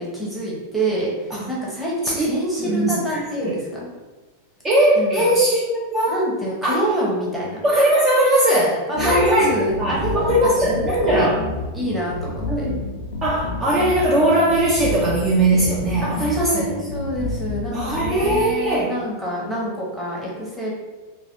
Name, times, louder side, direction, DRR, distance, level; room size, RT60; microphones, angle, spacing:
voice 1, 0.0-3.9 5.0-5.3 6.1-7.6 8.9-11.3 11.7-12.7 16.0-20.7, right 1 dB, ahead, -6 dB, 0.9 m, -26 dB
voice 2, 2.6-3.5 4.6-6.2 6.6-6.7 7.6-11.4 12.5-12.8 13.2-16.6 17.7-18.9, right 1 dB, 20° right, -6 dB, 0.6 m, -19 dB
sound 1, 9.0-18.4, left 3 dB, 70° left, 0.4 m, -29 dB
3.2 x 2.3 x 2.6 m, 1.3 s
supercardioid pair, 130°, 0 cm